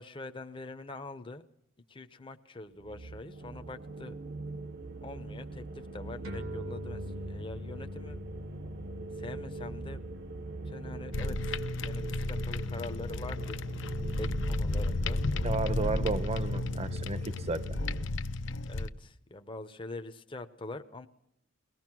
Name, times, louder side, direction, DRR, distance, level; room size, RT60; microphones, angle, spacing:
voice 1, 0.0-1.5 1.9-4.1 5.0-8.2 9.2-10.0 10.7-13.9 14.1-15.2 18.4-21.1, left 2 dB, 25° left, 8 dB, 0.8 m, -44 dB
sound 1, 2.7-18.1, right 2 dB, 55° right, 1.1 m, -42 dB
sound 2, 6.2-13.1, left 2 dB, 85° right, 2.5 m, -46 dB
sound 3, 11.1-18.9, left 2 dB, 65° left, 0.7 m, -33 dB
voice 2, 15.4-17.8, right 3 dB, 30° right, 15 dB, 0.8 m, -33 dB
22.5 x 19.0 x 6.1 m, 0.73 s
head